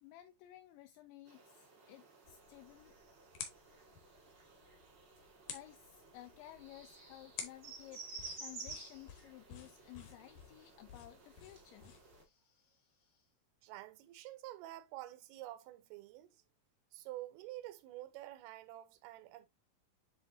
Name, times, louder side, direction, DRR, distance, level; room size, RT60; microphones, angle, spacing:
voice 1, 0.0-2.9 5.2-13.3, left 14 dB, 85° left, 2.6 m, -56 dB
sound 1, 1.3-12.2, right 4 dB, 60° right, 1.1 m, -54 dB
sound 2, 2.2-12.2, left 7 dB, 70° left, 2.1 m, -53 dB
voice 2, 13.6-16.4 16.9-19.5, right 15 dB, 85° right, 3.3 m, -49 dB
10.0 x 3.5 x 2.6 m
omnidirectional pair, 5.7 m